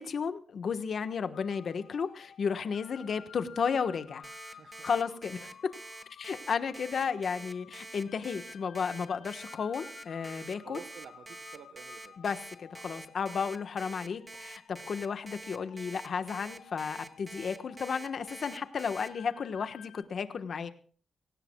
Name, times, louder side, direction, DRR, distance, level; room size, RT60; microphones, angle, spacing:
voice 1, 0.0-4.3 4.8-5.7 6.2-10.8 12.2-20.7, left 6 dB, 55° left, 10 dB, 1.2 m, -33 dB
sound 1, 1.3-20.0, left 8 dB, 75° left, 1.2 m, -54 dB
Alarm, 4.2-19.1, right 2 dB, 20° right, 1.1 m, -46 dB
voice 2, 4.5-4.9 10.6-12.2, right 7 dB, 80° right, 7 dB, 1.2 m, -50 dB
23.5 x 17.5 x 2.3 m, 0.43 s
cardioid pair, 115°, 0 cm